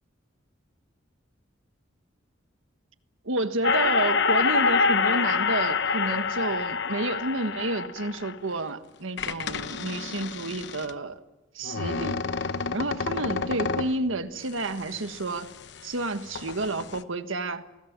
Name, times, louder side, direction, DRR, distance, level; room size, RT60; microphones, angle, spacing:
voice 1, 3.2-11.2 11.5-12.3 12.7-15.5 15.8-17.6, right 2 dB, 90° right, 1.5 m, -30 dB
sound 1, 3.6-8.6 9.2-10.9 11.6-14.0 14.5-16.0 16.3-17.0, left 5 dB, 60° left, 0.9 m, -27 dB
29.0 x 19.5 x 7.4 m
head